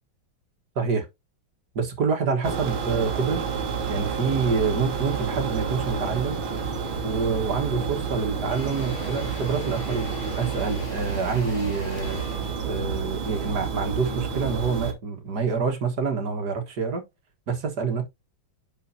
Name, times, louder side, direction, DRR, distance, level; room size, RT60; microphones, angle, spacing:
voice 1, 0.8-1.1 1.8-3.5 3.9-6.4 7.0-12.2 12.6-17.0 17.5-18.0, right 5 dB, 55° right, 2.0 m, -27 dB
sound 1, 2.4-14.9, right 6 dB, 80° right, 2.2 m, -30 dB
Engine / Drill, 8.4-14.2, equal, 60° left, 5.5 m, -40 dB
10.5 x 5.0 x 2.8 m
omnidirectional pair, 2.2 m